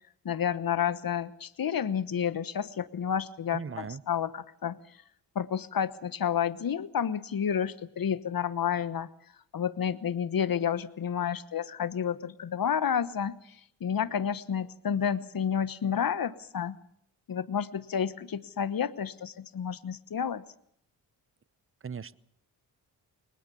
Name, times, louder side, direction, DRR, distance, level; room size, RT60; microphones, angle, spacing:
voice 1, 0.2-4.8 5.3-9.1 9.5-13.3 13.8-16.8 17.3-20.4, left 8 dB, 50° left, 16 dB, 1.1 m, -30 dB
voice 2, 3.5-4.0 21.8-22.2, right 6 dB, 30° right, 19 dB, 0.8 m, -38 dB
21.0 x 20.0 x 6.9 m, 0.72 s
supercardioid pair, 45°, 44 cm